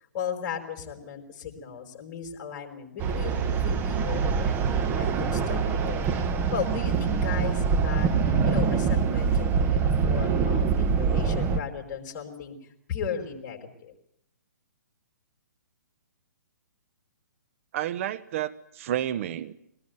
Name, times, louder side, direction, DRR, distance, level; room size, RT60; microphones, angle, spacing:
voice 1, 0.1-6.1 6.5-12.5 12.9-13.9, left 7 dB, 35° left, 3 dB, 5.1 m, -36 dB
sound 1, 3.0-11.6, right 5 dB, 20° right, 1.5 m, -24 dB
voice 2, 17.7-19.5, right 11 dB, 45° right, 13 dB, 1.1 m, -30 dB
22.5 x 19.0 x 9.4 m, 0.75 s
hypercardioid pair, 135°, 10 cm